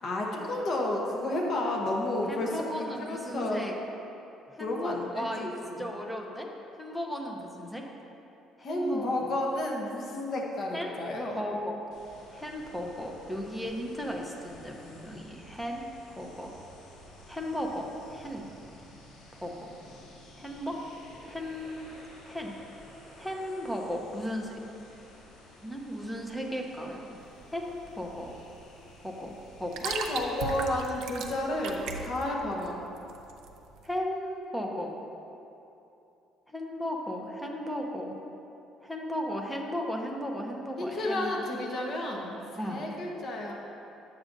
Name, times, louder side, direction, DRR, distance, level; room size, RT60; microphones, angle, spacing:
voice 1, 0.0-3.6 4.6-5.8 8.6-11.4 29.8-32.8 40.8-42.4 42.7-43.5, left 1 dB, 40° left, -1 dB, 0.8 m, -31 dB
voice 2, 2.3-3.7 4.5-6.5 6.8-7.8 8.6-9.3 10.7-11.0 11.3-11.8 12.3-15.9 16.1-16.6 17.3-18.5 19.3-19.7 20.4-20.8 21.2-21.8 22.3-22.5 23.2-24.6 25.6-27.1 27.5-28.3 29.0-29.9 33.8-35.0 36.5-38.2 38.8-41.4 42.6-42.8, equal, 5° left, 0 dB, 0.6 m, -35 dB
sound 1, 11.9-31.9, left 1 dB, 80° left, 1.4 m, -53 dB
sound 2, 27.2-33.9, right 5 dB, 65° right, 0.5 m, -38 dB
9.2 x 7.2 x 2.6 m, 2.9 s
cardioid pair, 175°, 0 cm